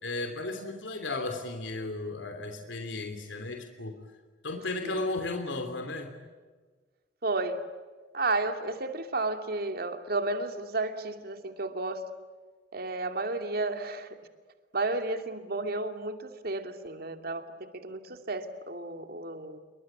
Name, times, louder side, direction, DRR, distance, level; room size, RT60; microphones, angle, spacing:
voice 1, 0.0-3.9 4.4-6.1, left 2 dB, 80° left, 5 dB, 3.1 m, -34 dB
voice 2, 7.2-7.7 8.1-12.1 12.7-14.1 14.7-19.6, right 2 dB, 55° right, 7 dB, 2.7 m, -32 dB
28.0 x 23.5 x 8.6 m, 1.4 s
head